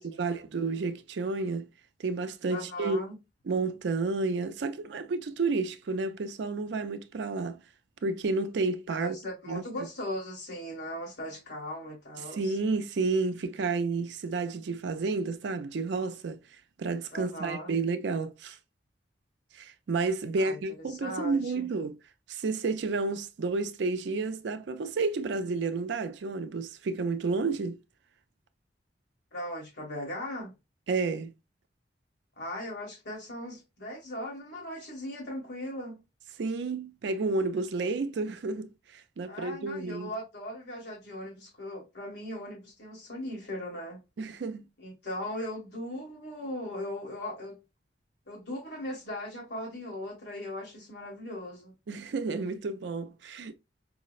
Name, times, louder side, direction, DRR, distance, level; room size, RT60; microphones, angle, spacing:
voice 1, 0.0-1.7 2.0-3.0 3.5-7.6 8.0-9.2 9.5-9.6 12.3-16.4 16.8-18.6 19.5-22.0 22.3-27.8 30.9-31.3 36.4-40.1 44.2-44.6 51.9-53.5, right 3 dB, 70° right, 0.4 m, -31 dB
voice 2, 2.5-3.2 9.0-12.6 17.1-17.7 20.4-20.6 20.9-21.7 29.3-30.5 32.4-36.0 39.3-44.0 44.8-47.6 48.3-51.7, left 1 dB, 60° left, 1.5 m, -38 dB
4.8 x 2.1 x 2.3 m
head